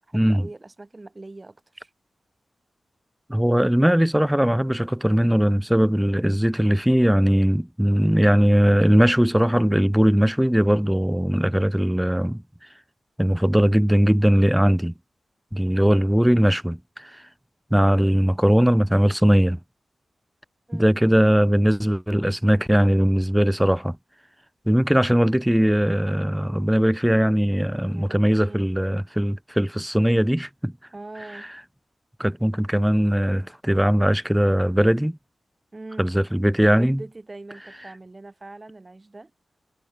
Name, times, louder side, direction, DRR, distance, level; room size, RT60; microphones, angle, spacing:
voice 1, 0.1-1.9 15.8-16.1 20.7-21.0 27.9-28.7 30.9-31.5 35.7-36.1 36.7-39.3, right 2 dB, 30° right, 6.9 m, -42 dB
voice 2, 3.3-12.4 13.2-14.9 15.5-17.2 17.7-19.6 20.7-24.0 24.7-30.7 32.2-35.2 36.0-37.0, equal, 5° right, 0.5 m, -20 dB
cardioid pair, 55°, 0 cm